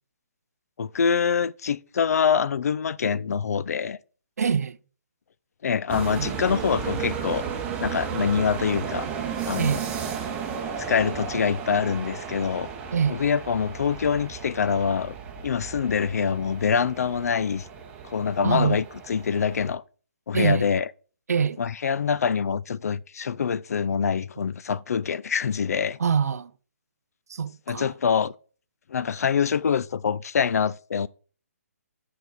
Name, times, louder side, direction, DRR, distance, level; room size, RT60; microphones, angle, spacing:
voice 1, 0.8-4.0 5.6-7.5 7.8-9.1 9.5-9.7 10.8-12.7 13.1-15.1 15.4-17.7 18.0-19.8 20.3-20.9 21.6-26.0 27.7-28.3 28.9-31.1, left 6 dB, 75° left, 0.3 m, -25 dB
voice 2, 4.4-4.8 6.1-6.3 9.6-9.8 12.9-13.2 18.4-18.8 20.3-20.7 21.3-21.6 26.0-26.5 27.3-27.9, right 6 dB, 80° right, 0.5 m, -25 dB
sound 1, 5.9-19.7, right 7 dB, 15° right, 0.8 m, -34 dB
7.1 x 4.6 x 4.0 m
hypercardioid pair, 160°, 8 cm